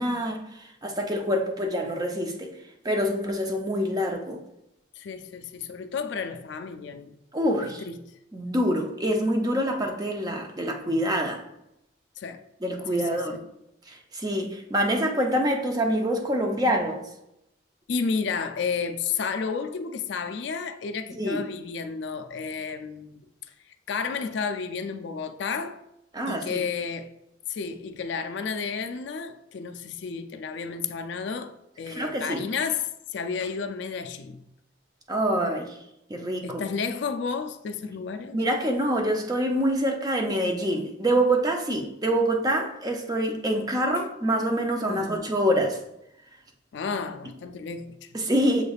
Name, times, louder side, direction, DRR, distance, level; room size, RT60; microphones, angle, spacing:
voice 1, 0.0-2.5 2.8-4.4 7.3-7.8 8.3-11.4 12.6-13.4 13.9-17.0 21.2-21.4 26.1-26.6 31.9-32.4 35.1-35.8 36.1-36.6 38.3-45.8 48.1-48.6, equal, 20° right, 0.5 m, -26 dB
voice 2, 5.0-7.2 7.6-8.0 12.2-12.4 12.9-13.4 17.9-23.2 23.9-25.8 26.3-27.1 27.5-34.4 36.4-38.4 44.9-45.3 46.7-48.1, left 5 dB, 65° left, 0.3 m, -32 dB
6.9 x 3.2 x 2.3 m
head